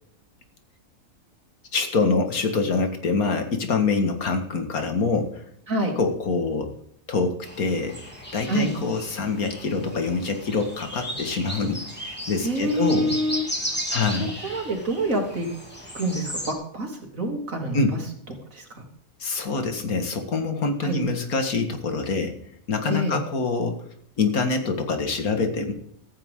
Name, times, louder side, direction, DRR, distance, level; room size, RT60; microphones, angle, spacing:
voice 1, 1.7-5.4 6.0-6.7 7.1-8.0 8.3-13.2 13.9-14.3 17.7-18.0 19.2-22.4 22.7-23.8 24.2-25.7, left 4 dB, 80° left, 6 dB, 2.3 m, -25 dB
sound 1, 7.4-16.5, equal, 5° left, 3.2 m, -35 dB
voice 2, 12.4-13.5 13.8-15.5 15.9-18.0 18.5-18.6 20.8-21.0 22.9-23.2, right 1 dB, 65° right, 2 dB, 3.4 m, -27 dB
15.0 x 14.0 x 3.8 m, 0.68 s
omnidirectional pair, 1.5 m